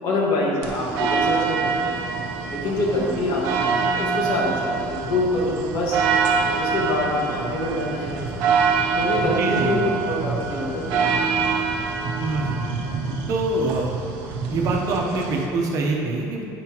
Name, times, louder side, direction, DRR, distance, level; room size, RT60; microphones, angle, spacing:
voice 1, 0.0-2.0 2.5-6.0 6.4-8.5 8.9-11.7, left 2 dB, 60° left, -3 dB, 1.6 m, -26 dB
sound 1, 0.6-15.5, right 5 dB, 70° right, 0.8 m, -25 dB
voice 2, 9.2-9.7 12.2-12.8 13.3-14.0 14.5-16.4, right 3 dB, 45° right, 0 dB, 0.9 m, -25 dB
9.0 x 5.7 x 3.0 m, 2.7 s
cardioid pair, 145°, 8 cm